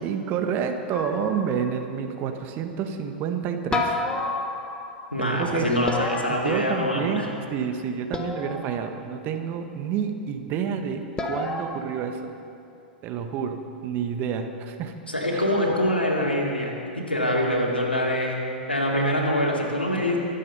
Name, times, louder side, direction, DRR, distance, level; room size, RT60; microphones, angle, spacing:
voice 1, 0.0-4.0 5.2-5.7 6.3-12.3 13.0-14.9 15.3-15.4 20.0-20.2, right 7 dB, 35° right, 6 dB, 1.3 m, -29 dB
sound 1, 0.9-1.8 3.7-5.1 5.9-7.2 8.1-9.0 11.2-11.8, left 3 dB, 15° left, 1.3 m, -30 dB
voice 2, 5.1-7.3 15.1-18.4 18.7-20.2, left 1 dB, 90° left, -2 dB, 2.6 m, -24 dB
23.5 x 8.4 x 5.5 m, 2.7 s
figure-of-eight pair, 100°, 5 cm